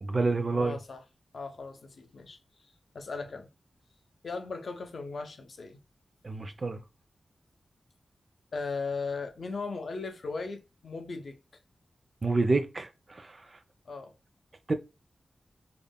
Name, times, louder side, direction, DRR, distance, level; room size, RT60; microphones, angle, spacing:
voice 1, 0.0-0.8 6.2-6.8 12.2-13.4 14.7-14.8, right 3 dB, 35° right, 0.3 m, -28 dB
voice 2, 0.5-1.0 1.3-2.4 2.9-3.5 4.2-5.8 8.5-11.4 13.9-14.1, left 4 dB, 60° left, 0.4 m, -37 dB
2.4 x 2.1 x 3.3 m
wide cardioid pair, 145°, 0 cm